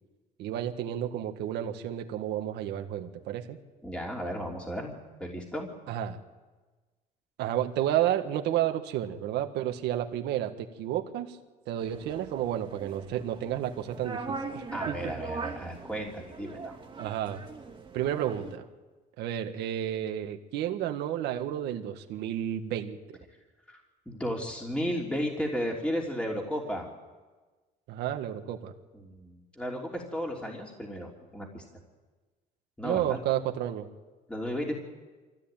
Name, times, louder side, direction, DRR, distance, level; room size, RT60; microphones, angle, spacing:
voice 1, 0.4-3.6 5.9-6.2 7.4-11.4 11.7-15.1 17.0-17.4 17.9-18.7 19.2-23.2 27.9-28.7 32.8-33.9, right 11 dB, 85° right, 6 dB, 1.8 m, -31 dB
voice 2, 3.8-4.9 5.2-5.7 14.7-16.8 23.7-23.8 24.1-26.9 29.0-31.6 32.8-33.2 34.3-34.7, equal, 5° left, -1 dB, 3.1 m, -34 dB
sound 1, 11.8-18.6, right 4 dB, 30° right, 2.3 m, -41 dB
24.5 x 15.5 x 9.0 m, 1.3 s
cardioid pair, 110°, 17 cm